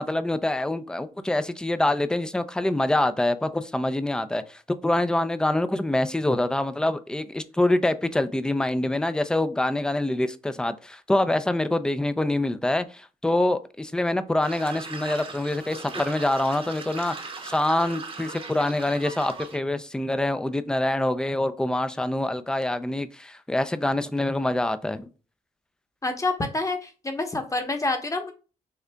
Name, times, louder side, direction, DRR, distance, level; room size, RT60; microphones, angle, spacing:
voice 1, 0.0-17.1 17.4-25.1, left 1 dB, 5° left, 0.4 m, -25 dB
sound 1, 14.4-19.6, right 4 dB, 35° right, 0.8 m, -39 dB
voice 2, 26.0-28.3, left 2 dB, 20° left, 1.0 m, -27 dB
6.4 x 2.4 x 2.2 m
supercardioid pair, 60°, 16 cm